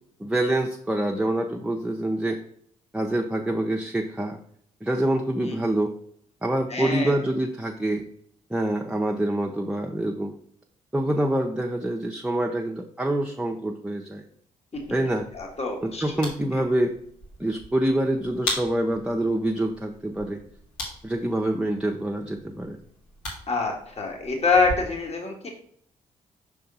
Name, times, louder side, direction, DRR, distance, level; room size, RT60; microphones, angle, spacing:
voice 1, 0.2-2.4 2.9-4.4 4.8-5.9 6.4-8.1 8.5-10.3 10.9-14.2 14.9-15.3 15.8-16.9 17.4-20.4 21.0-22.8, right 1 dB, 5° right, 1 dB, 0.7 m, -26 dB
voice 2, 6.7-7.1 15.3-16.0 16.5-16.6 23.5-25.5, left 4 dB, 35° left, 1 dB, 1.7 m, -25 dB
sound 1, 14.7-24.8, left 1 dB, 85° left, 1.8 m, -39 dB
5.6 x 3.5 x 5.5 m, 0.64 s
hypercardioid pair, 45°, 18 cm